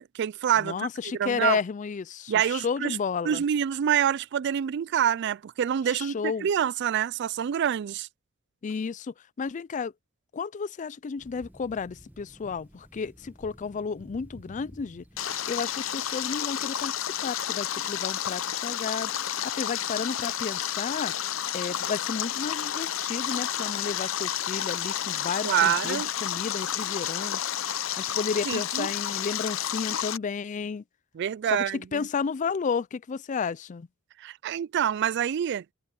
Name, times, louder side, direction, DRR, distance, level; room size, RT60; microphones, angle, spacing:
voice 1, 0.0-0.9 1.1-1.6 2.3-3.0 3.2-8.1 25.4-26.1 28.5-28.9 31.1-32.1 34.2-35.6, right 9 dB, 55° right, 0.3 m, -26 dB
voice 2, 0.6-3.4 5.9-6.5 8.6-9.9 10.3-15.0 15.5-21.1 21.5-27.5 28.0-30.8 31.5-33.9, left 5 dB, 35° left, 0.4 m, -32 dB
Thunder, 11.2-16.9, equal, 10° right, 1.6 m, -52 dB
Stream, 15.2-30.2, left 10 dB, 75° left, 0.7 m, -31 dB
head